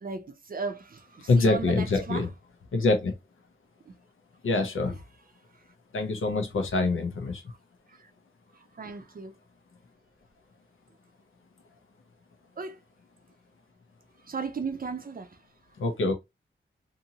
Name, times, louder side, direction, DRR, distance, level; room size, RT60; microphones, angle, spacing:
voice 1, 0.0-2.2 8.8-9.3 12.6-12.8 14.3-15.3, right 5 dB, 45° right, 0.5 m, -35 dB
voice 2, 1.3-2.3 2.7-3.2 4.4-5.0 5.9-7.4 15.8-16.1, left 3 dB, 90° left, 0.7 m, -25 dB
2.7 x 2.6 x 2.7 m
wide cardioid pair, 80°, 20 cm